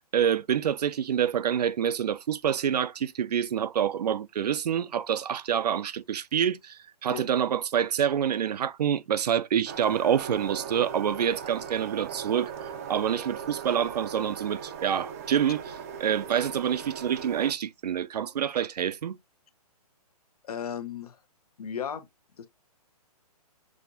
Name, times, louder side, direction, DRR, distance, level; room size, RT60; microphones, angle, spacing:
voice 1, 0.1-12.5 12.9-19.2, right 9 dB, 80° right, 0.5 m, -27 dB
sound 1, 9.7-17.5, right 7 dB, 25° right, 0.4 m, -39 dB
voice 2, 20.4-21.2 21.6-22.1 22.4-22.5, left 8 dB, 70° left, 0.9 m, -35 dB
6.2 x 2.6 x 2.6 m
hypercardioid pair, 160°, 20 cm